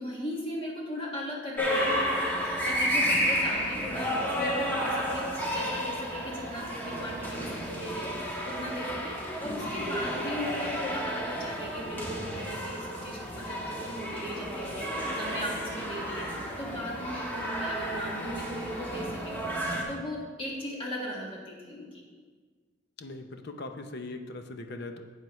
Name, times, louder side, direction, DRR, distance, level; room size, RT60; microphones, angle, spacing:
voice 1, 0.0-19.5 19.9-22.0, equal, 25° left, -4 dB, 1.8 m, -38 dB
sound 1, 1.6-19.8, equal, 10° left, 1.3 m, -32 dB
voice 2, 23.0-25.0, left 2 dB, 55° left, 6 dB, 0.7 m, -40 dB
11.5 x 8.1 x 3.1 m, 1.5 s
head